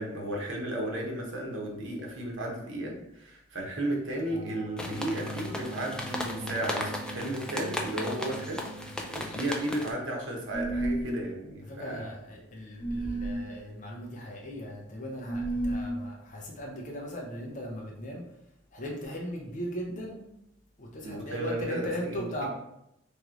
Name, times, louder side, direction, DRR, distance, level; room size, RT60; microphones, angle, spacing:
voice 1, 0.0-12.1 21.0-22.5, right 1 dB, 85° right, 0 dB, 1.0 m, -34 dB
sound 1, 4.3-9.4, equal, 15° right, 0.9 m, -41 dB
sound 2, 4.8-9.9, left 1 dB, 5° left, 0.4 m, -37 dB
sound 3, 10.5-11.1 12.8-13.4 15.2-15.9, right 2 dB, 25° left, 0.9 m, -31 dB
voice 2, 11.7-18.2 18.7-20.3 20.8-22.5, equal, 40° left, -1 dB, 0.6 m, -38 dB
3.2 x 3.0 x 3.7 m, 0.81 s
head